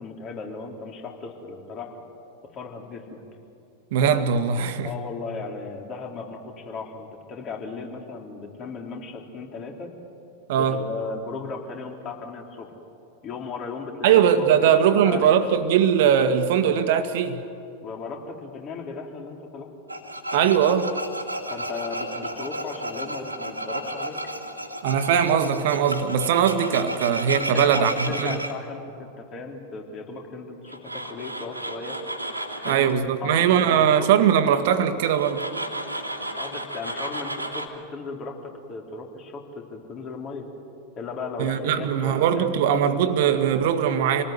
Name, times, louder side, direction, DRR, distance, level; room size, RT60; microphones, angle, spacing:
voice 1, 0.0-1.9 2.4-3.2 4.8-9.9 10.5-12.7 13.2-15.4 17.8-19.7 21.5-24.2 27.4-28.8 29.2-32.0 32.6-32.9 33.2-34.1 36.4-40.5 41.0-42.5, left 4 dB, 30° left, 4.0 m, -36 dB
voice 2, 3.9-4.9 10.5-10.8 14.0-17.4 20.3-20.9 24.8-28.4 32.6-35.5 41.4-44.2, right 8 dB, 50° right, 1.8 m, -20 dB
Tools, 19.9-28.5 30.7-32.9 35.1-37.7, right 1 dB, 85° right, 2.4 m, -33 dB
28.0 x 18.5 x 9.5 m
figure-of-eight pair, 90°, 0 cm